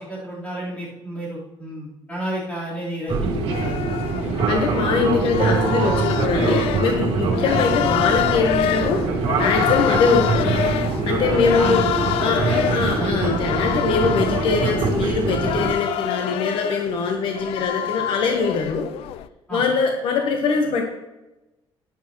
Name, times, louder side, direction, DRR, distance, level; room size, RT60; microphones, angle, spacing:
voice 1, 0.0-3.8 11.3-12.7 13.0-13.4 19.5-19.6, right 1 dB, 15° left, -7 dB, 4.0 m, -31 dB
Fixed-wing aircraft airplane, 3.1-15.7, right 4 dB, 70° right, 2.1 m, -23 dB
sound 1, 3.5-19.3, left 11 dB, 85° left, 0.4 m, -27 dB
voice 2, 4.4-10.5 11.1-11.8 12.2-18.9 19.5-20.8, left 4 dB, 60° left, 3 dB, 1.2 m, -22 dB
11.5 x 10.5 x 3.1 m, 1.0 s
cardioid pair, 165°, 10 cm